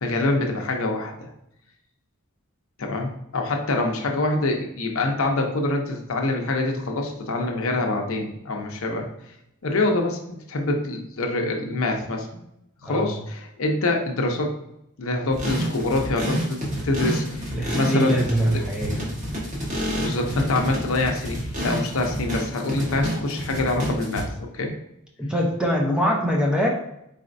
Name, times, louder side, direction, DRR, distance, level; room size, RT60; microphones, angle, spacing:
voice 1, 0.0-1.3 2.8-9.1 9.6-10.2 10.5-12.4 12.8-14.5 15.0-16.6 16.8-18.1 18.5-18.6 19.9-24.3 24.5-24.7, left 2 dB, 65° left, 2 dB, 0.7 m, -25 dB
sound 1, 15.3-24.2, equal, 35° right, 1.2 m, -29 dB
voice 2, 17.5-18.9 25.2-26.7, equal, 5° right, -2 dB, 0.6 m, -23 dB
4.2 x 4.1 x 2.6 m, 0.80 s
head